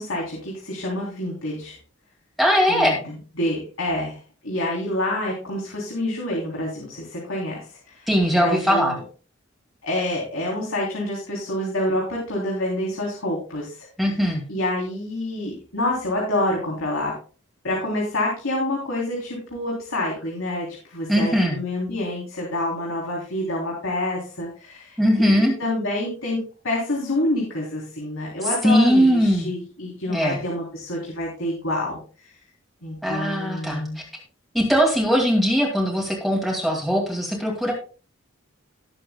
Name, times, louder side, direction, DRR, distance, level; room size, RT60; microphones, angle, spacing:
voice 1, 0.0-1.8 2.7-2.9 3.4-9.0 9.8-13.9 14.5-17.1 17.6-32.3 32.8-34.0, left 1 dB, 90° left, -2 dB, 3.3 m, -27 dB
voice 2, 2.4-3.0 8.1-9.0 14.0-14.4 21.1-21.6 25.0-25.5 28.4-29.5 30.1-30.4 33.0-33.8 34.5-37.7, equal, ahead, -2 dB, 2.3 m, -20 dB
19.0 x 7.6 x 2.2 m, 0.38 s
head